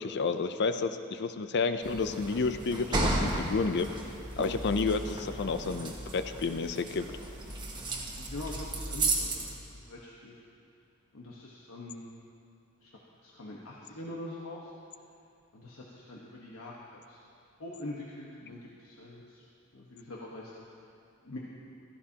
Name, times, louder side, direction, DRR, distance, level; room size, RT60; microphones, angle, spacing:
voice 1, 0.0-4.1 4.4-7.1, left 4 dB, 55° left, 9 dB, 0.5 m, -30 dB
sound 1, 1.8-9.6, right 2 dB, 20° right, 1.3 m, -34 dB
voice 2, 8.2-10.4 11.1-12.1 12.8-12.9 13.2-14.7 15.5-17.2 17.6-19.4 19.7-20.5 21.2-21.4, left 1 dB, 90° left, -5 dB, 1.3 m, -44 dB
15.5 x 14.5 x 2.9 m, 2.4 s
head